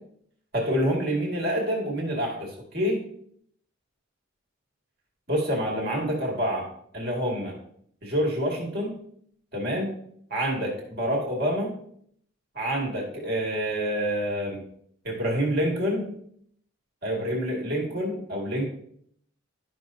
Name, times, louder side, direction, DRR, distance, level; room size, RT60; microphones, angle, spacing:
voice 1, 0.5-3.0 5.3-6.7 6.9-7.5 8.0-8.9 9.5-9.9 10.3-11.7 12.6-14.6 15.0-16.1 17.0-18.7, equal, 50° right, -2 dB, 2.2 m, -27 dB
12.0 x 5.6 x 2.7 m, 0.66 s
head